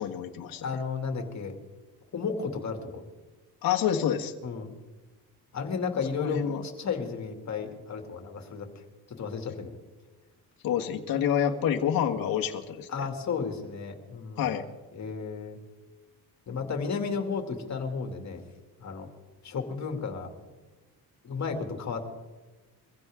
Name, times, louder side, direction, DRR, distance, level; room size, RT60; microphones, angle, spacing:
voice 1, 0.0-0.6 3.6-4.3 6.0-6.6 10.6-13.1 14.4-14.7, left 9 dB, 65° left, 2 dB, 1.5 m, -28 dB
voice 2, 0.6-1.6 2.1-3.0 4.4-4.7 5.5-8.7 9.1-9.7 12.9-14.5 14.9-15.6 16.5-18.4 18.8-19.1 19.4-20.3 21.2-22.1, left 5 dB, 45° left, 4 dB, 2.4 m, -33 dB
23.5 x 15.5 x 3.6 m, 1.2 s
cardioid pair, 110°, 38 cm